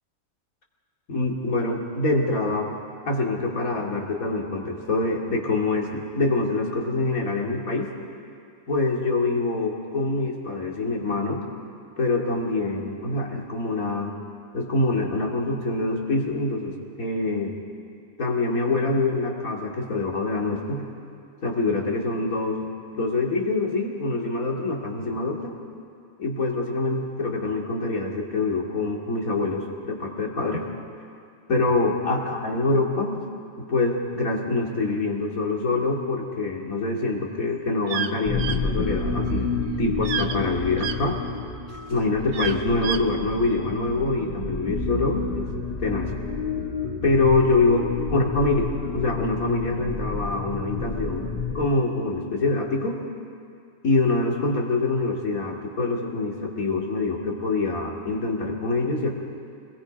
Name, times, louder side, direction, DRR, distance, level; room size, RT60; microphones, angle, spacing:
voice 1, 1.1-2.7 3.0-7.9 8.7-11.4 12.0-14.1 14.5-17.5 18.2-20.8 21.4-22.7 22.9-25.5 26.2-30.6 31.5-33.2 33.6-41.2 41.9-45.5 45.8-46.1 47.0-47.8 48.1-48.7 48.9-53.0 53.8-59.1, left 3 dB, 85° left, -1 dB, 2.9 m, -25 dB
sound 1, 37.9-38.1 38.4-38.6 40.0-40.4 40.8-41.0 42.3-43.0, right 8 dB, 80° right, 1.2 m, -29 dB
sound 2, 38.2-51.7, left 4 dB, 40° left, 2.1 m, -30 dB
27.0 x 21.5 x 5.2 m, 2.4 s
omnidirectional pair, 1.4 m